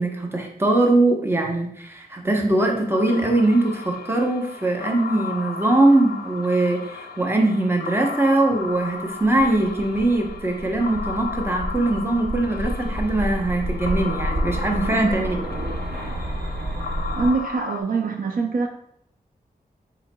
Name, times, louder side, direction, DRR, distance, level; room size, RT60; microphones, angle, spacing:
voice 1, 0.0-15.4, right 2 dB, 15° right, 2 dB, 0.7 m, -21 dB
sound 1, 2.9-17.8, left 5 dB, 75° left, 0.4 m, -35 dB
sound 2, 9.1-17.3, equal, 85° right, 0.8 m, -30 dB
voice 2, 14.7-15.2 17.2-18.7, right 4 dB, 65° right, 4 dB, 0.4 m, -24 dB
5.5 x 4.0 x 2.2 m, 0.71 s
wide cardioid pair, 110°, 16 cm